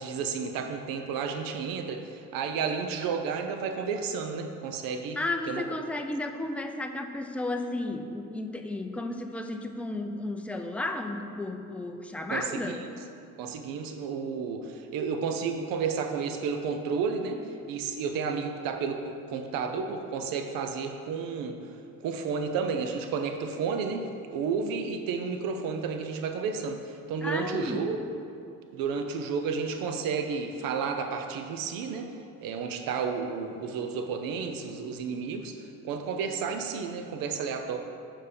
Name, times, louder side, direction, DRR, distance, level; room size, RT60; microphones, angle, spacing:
voice 1, 0.0-5.2 5.5-5.6 12.3-12.9 13.4-17.4 17.7-21.6 22.0-28.0 28.7-32.1 32.4-35.6 35.8-37.8, right 5 dB, 85° right, 6 dB, 0.6 m, -32 dB
voice 2, 5.2-12.8 27.2-27.9, left 2 dB, 5° left, 4 dB, 0.4 m, -33 dB
6.6 x 5.5 x 5.2 m, 2.5 s
cardioid pair, 130°, 33 cm